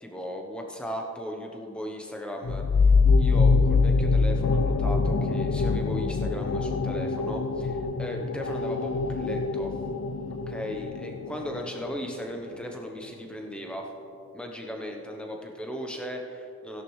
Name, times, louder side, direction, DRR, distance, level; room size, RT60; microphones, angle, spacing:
voice 1, 0.0-2.6 3.2-9.7 10.5-13.9 14.3-16.8, equal, 5° left, 1 dB, 0.9 m, -37 dB
sound 1, 2.4-11.8, left 4 dB, 55° left, 0.4 m, -24 dB
16.5 x 11.0 x 3.2 m, 2.9 s
head